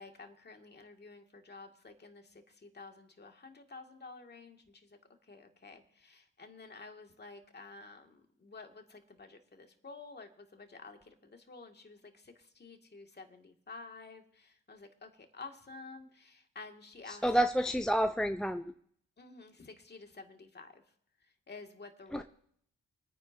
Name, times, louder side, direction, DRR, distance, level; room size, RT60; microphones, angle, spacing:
voice 1, 0.0-17.4 19.2-20.8 21.2-22.2, left 3 dB, 35° left, 4 dB, 2.0 m, -51 dB
voice 2, 17.2-18.7 22.1-22.2, equal, ahead, 8 dB, 0.5 m, -29 dB
25.0 x 9.6 x 2.7 m, 0.65 s
supercardioid pair, 55°, 30 cm